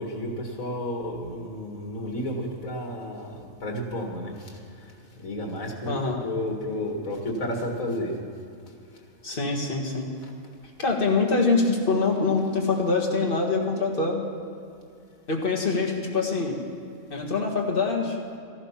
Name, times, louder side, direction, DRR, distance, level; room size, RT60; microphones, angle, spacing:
voice 1, 0.0-4.5 5.2-5.9 6.2-8.1, left 1 dB, 80° left, 1 dB, 2.3 m, -32 dB
voice 2, 5.9-6.2 9.2-10.1 10.8-14.2 15.3-16.6 17.1-18.2, left 4 dB, 40° left, 0 dB, 1.9 m, -24 dB
14.5 x 11.5 x 5.7 m, 2.5 s
omnidirectional pair, 1.4 m